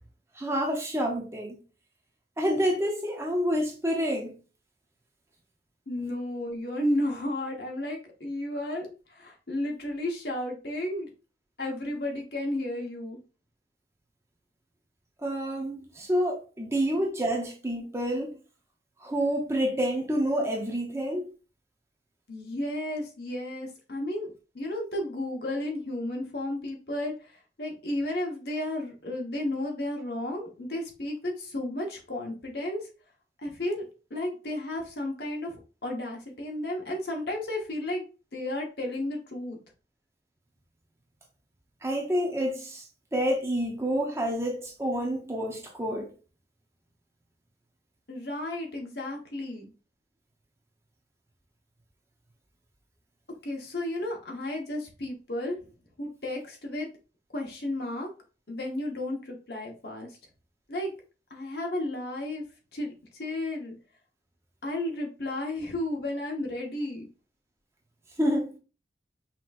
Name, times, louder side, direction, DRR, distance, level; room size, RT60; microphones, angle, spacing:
voice 1, 0.4-1.6 2.4-4.3 15.2-18.4 19.0-21.3 41.8-42.9 43.1-46.1 68.2-68.6, equal, 15° right, 0.7 m, -28 dB
voice 2, 5.9-11.1 11.6-13.2 22.3-32.9 33.4-33.8 34.1-38.0 38.3-39.6 48.1-49.7 53.4-55.6 56.0-56.9 57.3-58.1 58.5-60.1 60.7-60.9 61.3-62.4 62.7-63.7 64.6-67.1, left 1 dB, 60° left, 1.2 m, -33 dB
5.8 x 2.9 x 2.5 m
head